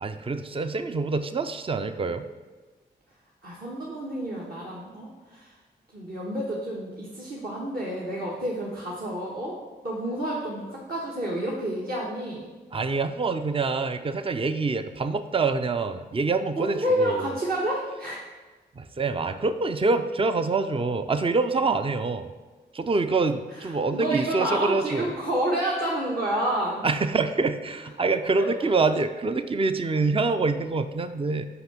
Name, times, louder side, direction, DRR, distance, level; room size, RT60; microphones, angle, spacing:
voice 1, 0.0-2.3 12.7-17.3 18.8-22.3 22.7-25.0 26.8-31.5, right 3 dB, 30° right, 10 dB, 0.5 m, -26 dB
voice 2, 3.4-5.5 5.9-9.6 9.8-12.5 16.6-18.2 23.5-26.8 28.4-28.7, right 1 dB, 55° right, -5 dB, 1.5 m, -29 dB
5.6 x 5.0 x 6.1 m, 1.3 s
supercardioid pair, 40°, 19 cm